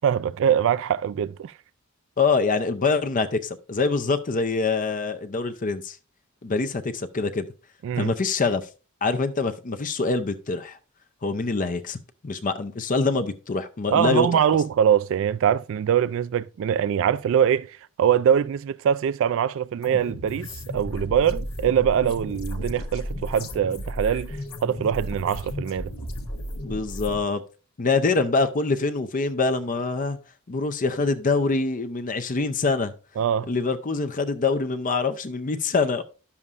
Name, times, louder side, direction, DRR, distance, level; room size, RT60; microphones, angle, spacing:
voice 1, 0.0-1.5 7.8-8.1 13.9-25.9 33.2-33.5, right 8 dB, 65° right, 0.3 m, -23 dB
voice 2, 2.2-6.0 6.4-7.5 8.0-8.7 9.0-10.8 11.2-12.0 12.2-14.4 26.6-27.4 27.8-30.2 30.5-32.9 33.5-36.0, left 4 dB, 40° left, 0.6 m, -25 dB
sound 1, 19.8-27.2, equal, 80° left, 1.2 m, -34 dB
11.0 x 7.1 x 2.5 m
head